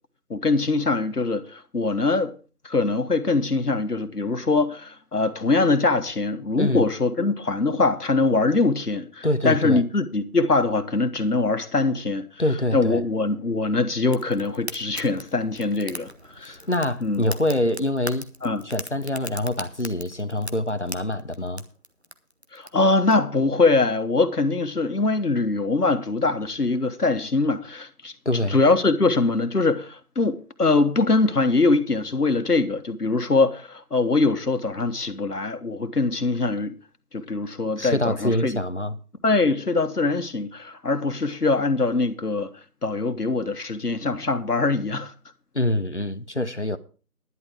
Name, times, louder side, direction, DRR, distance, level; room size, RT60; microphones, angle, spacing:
voice 1, 0.3-2.3 2.6-12.2 12.7-16.5 17.0-17.2 18.4-18.6 22.5-28.1 28.5-36.8 37.1-38.6 39.2-42.5 42.8-45.1, left 3 dB, 80° left, 1.5 m, -23 dB
voice 2, 9.2-9.8 12.4-13.0 16.4-18.3 18.6-21.6 28.3-28.6 37.8-39.0 45.5-46.8, left 1 dB, 50° left, 0.7 m, -25 dB
Fire, 14.1-23.1, right 1 dB, 45° right, 0.8 m, -41 dB
11.0 x 10.0 x 4.7 m
figure-of-eight pair, 180°, 46 cm